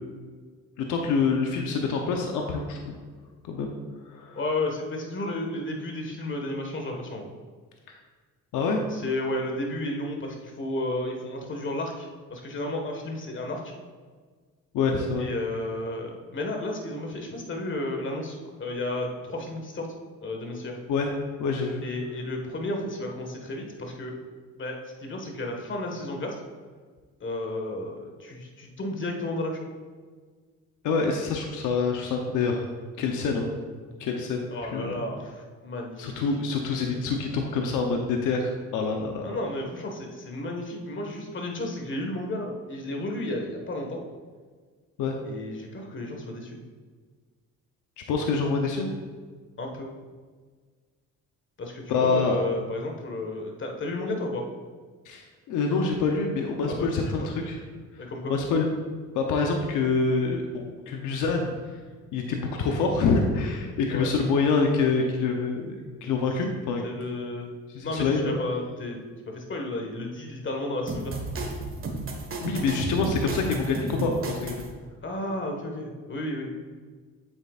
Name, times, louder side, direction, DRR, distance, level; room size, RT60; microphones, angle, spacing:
voice 1, 0.8-3.0 3.4-3.7 4.1-4.4 7.9-8.0 8.5-8.9 14.7-15.3 20.9-21.1 21.4-21.8 30.8-32.6 33.0-33.5 34.0-34.4 34.7-35.0 36.0-39.4 45.0-45.2 48.1-48.9 51.9-52.4 55.1-57.6 58.2-58.7 59.1-61.5 62.1-66.8 67.7-68.4 72.4-74.6, left 4 dB, 90° left, 2 dB, 0.9 m, -26 dB
voice 2, 4.3-7.3 8.9-13.7 15.2-19.9 20.2-20.8 21.8-24.2 24.6-26.3 27.2-29.7 34.5-36.2 39.2-44.0 45.2-46.6 49.6-49.9 51.6-54.4 56.7-57.3 58.0-58.3 63.9-64.1 66.8-67.5 67.8-69.0 69.3-71.1 75.0-76.5, left 1 dB, 40° left, 2 dB, 1.6 m, -32 dB
sound 1, 70.9-74.7, right 2 dB, 45° right, 1.6 m, -32 dB
8.9 x 7.8 x 2.5 m, 1.5 s
cardioid pair, 90°, 30 cm